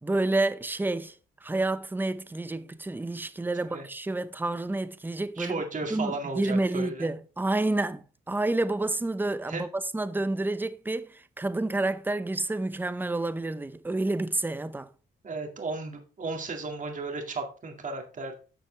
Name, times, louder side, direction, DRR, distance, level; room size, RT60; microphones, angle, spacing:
voice 1, 0.0-1.1 1.4-5.6 5.9-14.9, right 2 dB, 10° right, 0.7 m, -29 dB
voice 2, 5.4-7.1 9.5-9.6 15.2-18.4, right 3 dB, 40° right, 2.2 m, -34 dB
10.5 x 6.6 x 3.3 m
cardioid pair, 90°, 20 cm